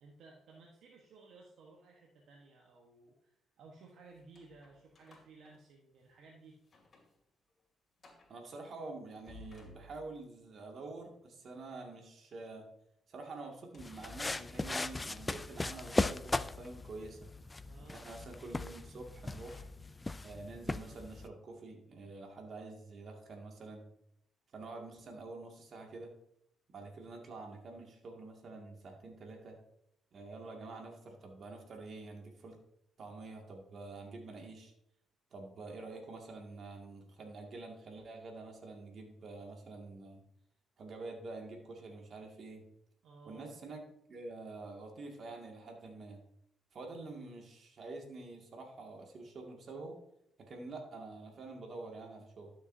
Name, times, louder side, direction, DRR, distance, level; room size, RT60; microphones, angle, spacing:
voice 1, 0.0-3.3 3.6-6.6 17.6-18.1 43.0-43.5, right 3 dB, 75° right, -1 dB, 1.2 m, -57 dB
sound 1, 4.1-6.2 6.6-7.2 7.5-7.6 8.0-8.4 9.0-10.4 13.5-15.3 15.9-16.1 17.8-20.1, left 2 dB, 40° left, 2.5 m, -60 dB
voice 2, 8.3-12.7 13.1-17.3 17.9-19.7 20.2-23.9 24.5-26.1 26.7-29.6 30.1-32.6 33.0-34.7 35.3-40.2 40.8-42.7 43.3-46.2 46.7-50.0 50.4-52.5, right 3 dB, 55° right, 1 dB, 2.1 m, -47 dB
sound 2, 13.8-21.3, left 2 dB, 20° left, 0.4 m, -38 dB
12.0 x 6.5 x 2.7 m, 0.77 s
cardioid pair, 90°, 0 cm